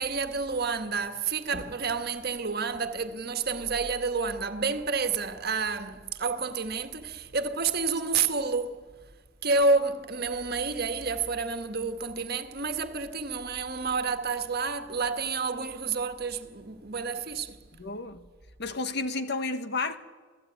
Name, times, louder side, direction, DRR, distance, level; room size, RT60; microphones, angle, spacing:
voice 1, 0.0-8.8 9.4-17.6, right 4 dB, 55° right, 1.7 m, -29 dB
voice 2, 17.8-18.3 18.6-20.0, left 3 dB, 60° left, 1.5 m, -31 dB
26.5 x 16.5 x 9.4 m
head